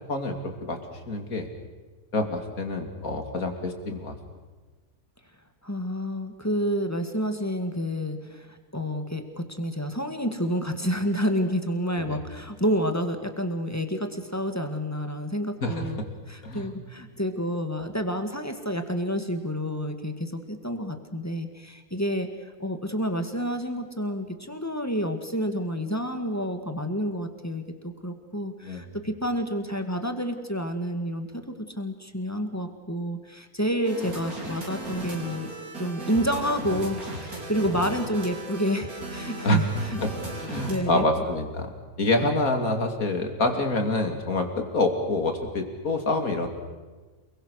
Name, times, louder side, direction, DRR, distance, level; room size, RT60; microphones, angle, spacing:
voice 1, 0.1-0.8 1.1-1.5 2.1-4.1 12.0-12.2 15.6-15.9 16.4-16.7 28.6-28.9 39.4-39.6 40.0-40.1 40.4-46.5, left 2 dB, 65° left, 5 dB, 3.2 m, -27 dB
voice 2, 5.6-16.0 16.3-22.3 22.6-35.5 35.8-40.0 40.5-41.1 42.2-42.3, equal, 10° left, 6 dB, 1.9 m, -29 dB
sound 1, 33.8-40.8, right 1 dB, 70° right, 5.3 m, -36 dB
29.0 x 22.0 x 6.6 m, 1.3 s
omnidirectional pair, 1.6 m